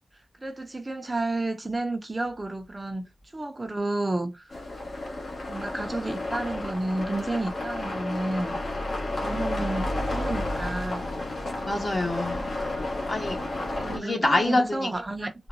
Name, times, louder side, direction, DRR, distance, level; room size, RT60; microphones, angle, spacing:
voice 1, 0.4-3.0 3.3-4.6 5.5-8.6 9.2-11.0 12.6-13.1 13.8-15.3, right 2 dB, 25° right, 0.5 m, -31 dB
sound 1, 4.5-14.0, left 2 dB, 55° left, 1.3 m, -31 dB
voice 2, 11.6-12.5 13.1-13.4 13.9-14.9, left 2 dB, 40° left, 1.3 m, -25 dB
3.7 x 2.2 x 2.6 m
cardioid pair, 75°, 0 cm